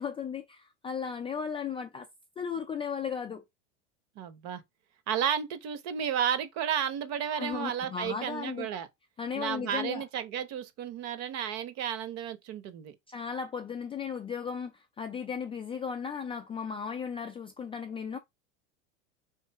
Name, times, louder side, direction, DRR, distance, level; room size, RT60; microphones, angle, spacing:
voice 1, 0.0-2.1 2.4-3.4 7.4-8.7 9.2-10.0 13.1-14.7 15.0-18.2, left 6 dB, 15° left, 0.3 m, -35 dB
voice 2, 4.2-4.6 5.1-8.9 9.3-12.9, right 8 dB, 45° right, 0.9 m, -32 dB
3.3 x 2.7 x 4.5 m
supercardioid pair, 120°, 37 cm